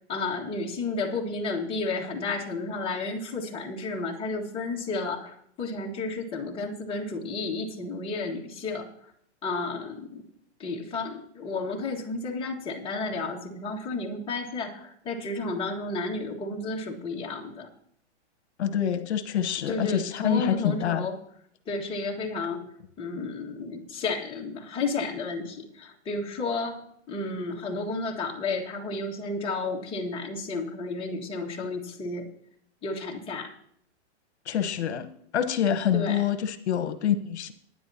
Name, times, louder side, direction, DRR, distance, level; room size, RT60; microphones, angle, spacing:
voice 1, 0.1-8.9 9.4-10.3 10.6-17.7 19.7-21.1 21.6-22.6 23.0-26.8 27.1-32.3 32.8-33.5 35.9-36.2, left 3 dB, 15° left, -2 dB, 1.7 m, -32 dB
voice 2, 18.6-21.1 34.5-35.1 35.3-37.5, left 9 dB, 70° left, 10 dB, 1.1 m, -26 dB
20.0 x 9.9 x 2.8 m, 0.69 s
hypercardioid pair, 150°, 35 cm